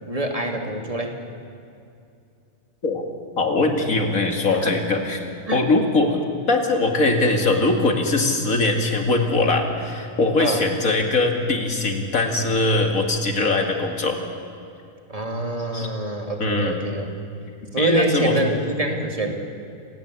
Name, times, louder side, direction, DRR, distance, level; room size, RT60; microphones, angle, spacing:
voice 1, 0.1-1.2 4.6-4.7 5.5-5.6 10.4-10.7 15.1-17.1 17.7-19.3, right 1 dB, 25° right, 3 dB, 2.6 m, -25 dB
voice 2, 3.4-14.2 15.7-15.9 16.4-16.8 17.8-18.6, left 2 dB, 85° left, 3 dB, 2.8 m, -21 dB
28.5 x 16.5 x 8.5 m, 2.5 s
omnidirectional pair, 1.4 m